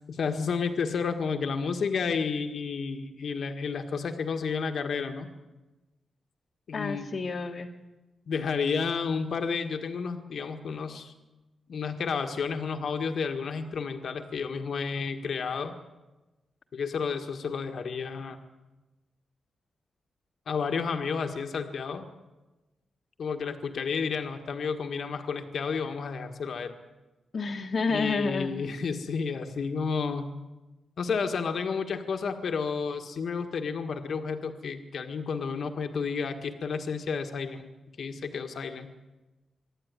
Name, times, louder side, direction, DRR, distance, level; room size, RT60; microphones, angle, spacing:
voice 1, 0.1-5.3 6.7-7.1 8.3-11.1 11.7-15.7 16.7-18.4 20.5-22.0 23.2-26.7 27.9-30.3 31.0-37.7 38.0-38.9, left 5 dB, 60° left, 6 dB, 1.6 m, -31 dB
voice 2, 6.7-7.7 27.3-28.6, left 4 dB, 45° left, -1 dB, 1.5 m, -30 dB
25.0 x 11.5 x 9.7 m, 1.1 s
wide cardioid pair, 125°, 0 cm